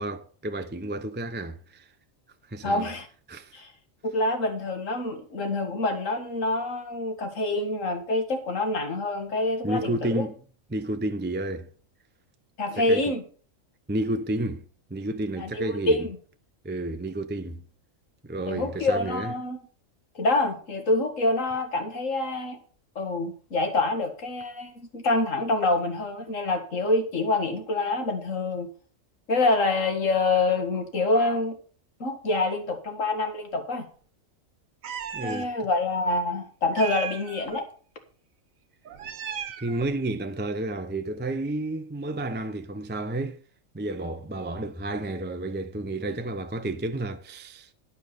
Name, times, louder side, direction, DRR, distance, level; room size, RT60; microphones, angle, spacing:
voice 1, 0.0-1.9 2.5-2.9 3.3-3.6 9.6-10.4 10.7-11.7 12.8-13.0 13.9-14.6 14.9-16.0 16.6-17.6 18.2-19.3 35.1-35.5 39.6-43.4 43.7-47.7, right 2 dB, 15° right, 0.4 m, -31 dB
voice 2, 2.6-3.1 3.5-3.7 4.0-10.2 12.6-13.2 15.4-16.2 18.5-19.6 20.2-22.6 23.0-28.7 29.3-31.6 32.0-33.9 35.2-37.7, left 2 dB, 70° left, 2.2 m, -26 dB
Meow, 34.8-35.5 36.7-37.6 38.9-40.0, right 8 dB, 80° right, 1.3 m, -36 dB
11.5 x 5.6 x 6.7 m
omnidirectional pair, 1.4 m